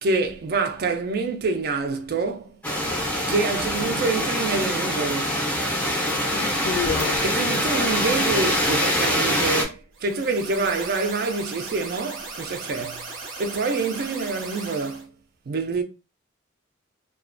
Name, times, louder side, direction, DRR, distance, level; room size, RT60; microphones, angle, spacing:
voice 1, 0.0-2.6 3.3-5.4 7.2-13.1 13.4-15.1 15.5-15.8, right 3 dB, 50° right, 0.4 m, -26 dB
sound 1, 2.6-9.6, equal, 5° left, 0.5 m, -24 dB
voice 2, 3.8-4.2 6.3-7.2, left 7 dB, 65° left, 0.3 m, -30 dB
sound 2, 9.9-15.0, right 3 dB, 80° right, 0.8 m, -37 dB
2.3 x 2.1 x 2.4 m
head